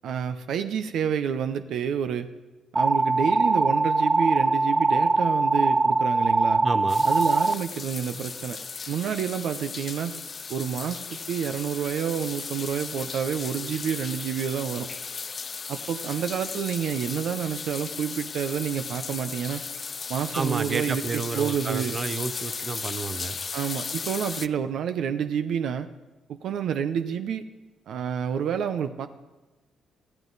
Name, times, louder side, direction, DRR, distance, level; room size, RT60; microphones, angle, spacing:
voice 1, 0.0-2.3 2.7-6.7 7.0-8.6 8.9-10.2 10.5-14.9 15.7-19.6 20.1-22.0 23.5-25.9 26.3-27.4 27.9-29.1, right 8 dB, 75° right, 9 dB, 0.7 m, -29 dB
sound 1, 2.8-7.5, right 2 dB, 20° right, 0.5 m, -22 dB
voice 2, 6.6-7.1 20.3-23.4, right 4 dB, 40° right, 12 dB, 0.9 m, -30 dB
sound 2, 6.9-24.5, left 5 dB, 40° left, 0.5 m, -36 dB
22.0 x 14.5 x 4.1 m, 1.1 s
cardioid pair, 90°, 0 cm